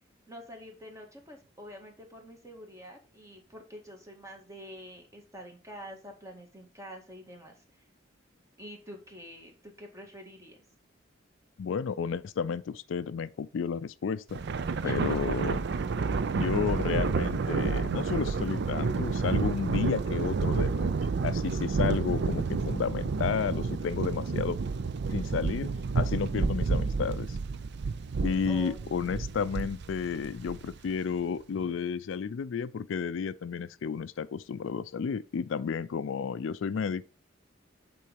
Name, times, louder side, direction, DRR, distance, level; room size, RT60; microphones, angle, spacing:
voice 1, 0.3-7.6 8.6-10.6 14.8-15.0 28.5-29.2, equal, 15° right, 1.8 m, -47 dB
voice 2, 11.6-14.4 14.8-15.6 16.3-20.9 21.2-24.6 25.1-27.4 28.2-37.1, left 6 dB, 70° left, 0.4 m, -32 dB
Thunder, 14.3-30.9, right 4 dB, 60° right, 0.5 m, -30 dB
8.4 x 3.9 x 5.1 m
head